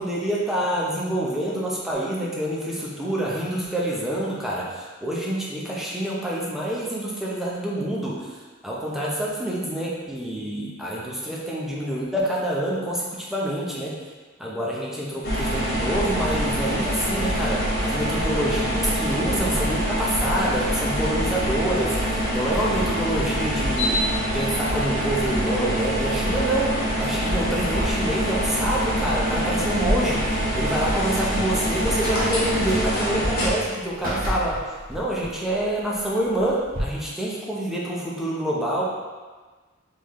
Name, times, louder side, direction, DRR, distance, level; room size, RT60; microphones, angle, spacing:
voice 1, 0.0-8.3 8.6-13.9 14.4-24.0 24.3-34.6 34.9-38.8, right 1 dB, ahead, -6 dB, 0.8 m, -27 dB
sound 1, 15.2-33.5, equal, 50° left, 1.1 m, -25 dB
sound 2, 29.8-36.8, equal, 45° right, 1.3 m, -33 dB
4.0 x 3.6 x 3.1 m, 1.3 s
head